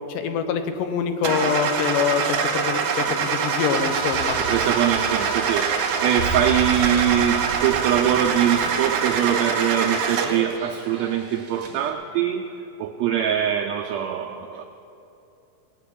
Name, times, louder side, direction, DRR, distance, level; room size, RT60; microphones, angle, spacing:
voice 1, 0.1-4.4, left 7 dB, 90° left, 8 dB, 2.4 m, -25 dB
Car / Engine starting, 1.2-10.5, right 6 dB, 70° right, 2.1 m, -24 dB
sound 1, 2.6-11.9, right 3 dB, 45° right, 1.7 m, -41 dB
sound 2, 3.8-10.0, right 1 dB, 75° left, 2.6 m, -36 dB
voice 2, 4.4-12.5 12.8-14.6, right 10 dB, 90° right, 3 dB, 1.5 m, -23 dB
17.5 x 5.9 x 8.4 m, 2.8 s
omnidirectional pair, 3.7 m